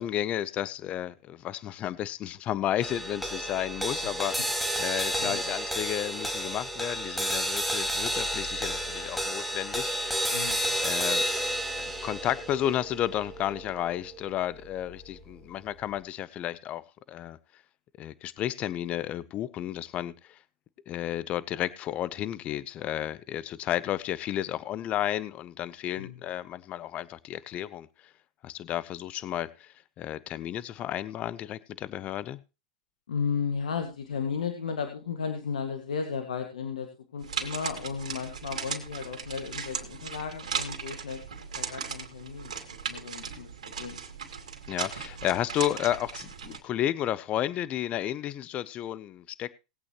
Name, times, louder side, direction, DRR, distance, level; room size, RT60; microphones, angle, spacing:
voice 1, 0.0-10.3 10.8-11.4 11.8-17.4 18.0-20.4 20.9-28.1 28.4-32.4 44.7-49.5, left 12 dB, 35° left, 18 dB, 0.7 m, -32 dB
sound 1, 2.8-15.3, equal, ahead, 1.9 m, -31 dB
voice 2, 5.2-5.5 10.3-10.8 26.0-26.2 33.1-43.5 43.8-44.0, left 6 dB, 90° left, 6 dB, 1.8 m, -34 dB
sound 2, 37.2-46.6, right 6 dB, 90° right, 2.3 m, -37 dB
19.5 x 8.5 x 3.0 m, 0.28 s
hypercardioid pair, 120°, 4 cm